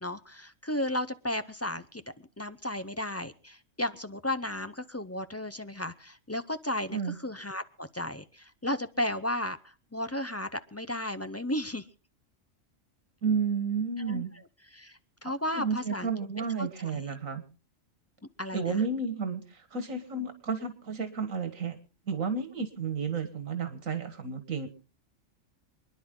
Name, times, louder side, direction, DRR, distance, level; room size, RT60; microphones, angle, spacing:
voice 1, 0.0-11.9 14.0-14.2 14.7-16.1 16.6-17.1 18.4-18.8, left 1 dB, 20° left, 12 dB, 0.4 m, -34 dB
voice 2, 13.2-14.3 15.3-17.4 18.5-21.8 22.1-24.7, right 5 dB, 85° right, 8 dB, 2.0 m, -32 dB
28.0 x 10.5 x 3.8 m, 0.36 s
omnidirectional pair, 1.3 m